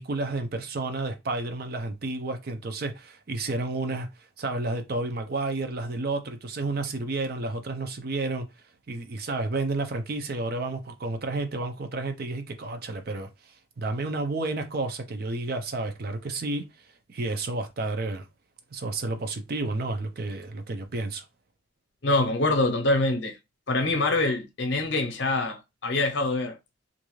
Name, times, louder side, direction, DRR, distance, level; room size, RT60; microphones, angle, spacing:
voice 1, 0.0-4.1 4.4-8.5 8.9-13.3 13.8-16.6 17.1-18.2 18.7-21.2, right 2 dB, 50° right, 0.5 m, -31 dB
voice 2, 22.0-23.3 23.7-26.6, left 2 dB, 60° left, 0.7 m, -25 dB
2.5 x 2.3 x 3.0 m
head